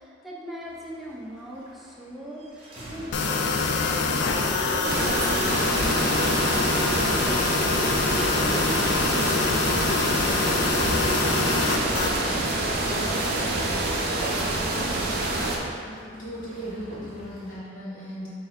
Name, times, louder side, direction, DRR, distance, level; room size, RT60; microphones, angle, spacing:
voice 1, 0.0-3.5 3.9-13.3, equal, ahead, -5 dB, 0.6 m, -40 dB
sound 1, 0.6-17.5, equal, 30° right, 0.9 m, -44 dB
sound 2, 3.1-12.1, left 4 dB, 60° left, 0.4 m, -25 dB
sound 3, 4.8-15.6, right 2 dB, 55° right, 0.6 m, -27 dB
voice 2, 15.6-18.3, equal, 45° left, -9 dB, 1.3 m, -37 dB
5.4 x 2.7 x 3.5 m, 2.2 s
head